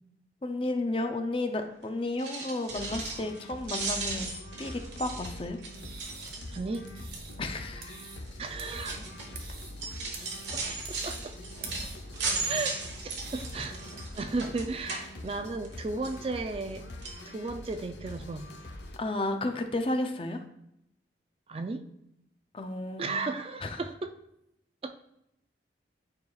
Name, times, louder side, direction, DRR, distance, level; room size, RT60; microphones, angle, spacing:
voice 1, 0.4-4.3 4.6-5.6 7.4-8.1 19.0-20.4 22.5-23.2 23.6-23.8, left 2 dB, 30° left, 6 dB, 0.5 m, -32 dB
sound 1, 2.1-3.4 3.6-6.8 7.1-7.5 8.2-15.7 16.0-16.8 17.0-17.2 17.7-17.8 18.1-18.2, right 3 dB, 85° right, 1.3 m, -37 dB
sound 2, 2.7-19.0, left 1 dB, 80° left, 0.7 m, -44 dB
sound 3, 5.6-14.0, right 4 dB, 50° right, 1.1 m, -48 dB
voice 2, 6.5-6.9 8.4-9.0 10.5-10.6 10.9-11.4 12.5-13.8 14.1-16.8 17.3-18.5 21.5-21.9 23.0-24.2 24.8-24.9, right 3 dB, 30° right, 8 dB, 0.3 m, -35 dB
9.4 x 4.7 x 2.3 m, 0.80 s
head